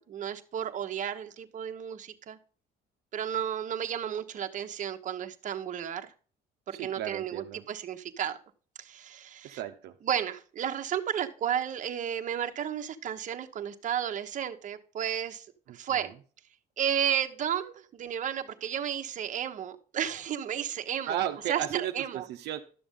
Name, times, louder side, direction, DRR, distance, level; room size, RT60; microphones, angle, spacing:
voice 1, 0.0-2.4 3.1-6.1 6.7-8.4 8.8-9.6 10.0-15.5 15.7-16.1 16.8-21.2 21.5-21.6 21.9-22.3, right 9 dB, 50° right, 1.1 m, -33 dB
voice 2, 6.7-7.6 9.4-10.0 15.7-16.1 21.1-22.6, right 11 dB, 80° right, 0.8 m, -35 dB
12.0 x 7.0 x 3.7 m
cardioid pair, 110°, 17 cm